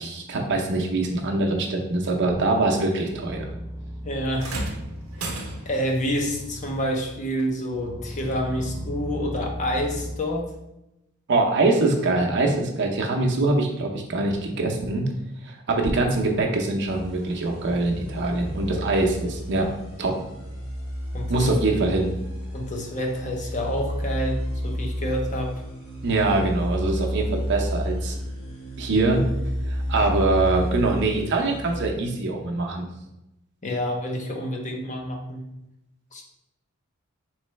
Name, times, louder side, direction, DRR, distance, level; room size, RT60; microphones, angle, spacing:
voice 1, 0.0-3.5 11.3-15.1 15.4-19.7 20.0-20.1 21.3-22.1 26.0-28.2 28.8-29.2 29.7-32.8, right 2 dB, 55° right, 1 dB, 0.7 m, -23 dB
sound 1, 3.1-7.2 7.7-10.2, equal, 10° right, 0.4 m, -37 dB
voice 2, 4.0-4.6 5.2-5.3 5.7-10.5 21.1-21.5 22.5-25.6 33.6-35.5 36.1-36.2, equal, 35° left, 1 dB, 0.6 m, -28 dB
sound 2, 4.4-5.9 7.4-7.5 8.4-8.5, right 2 dB, 85° right, 0.7 m, -33 dB
sound 3, 16.9-31.9, equal, 70° left, 1.4 m, -31 dB
4.2 x 3.2 x 3.1 m, 0.88 s
head